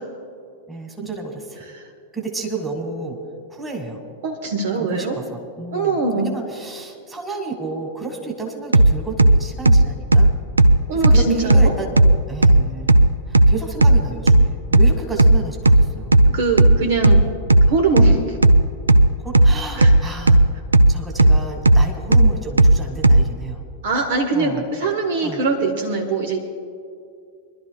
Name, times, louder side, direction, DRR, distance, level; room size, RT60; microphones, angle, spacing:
voice 1, 0.7-1.6 2.1-3.2 3.5-4.0 4.8-10.3 10.9-12.0 12.3-16.1 19.2-20.4 20.9-23.6 24.3-24.6 25.2-25.4, right 3 dB, 10° right, 2 dB, 2.1 m, -31 dB
voice 2, 4.2-5.2 5.7-6.3 10.9-11.7 16.3-17.2 17.7-18.4 19.8-19.9 23.8-26.4, right 4 dB, 55° right, 4 dB, 1.1 m, -22 dB
sound 1, 8.7-23.3, right 1 dB, 80° right, 0.4 m, -13 dB
25.5 x 12.0 x 2.4 m, 2.4 s
figure-of-eight pair, 90°, 0 cm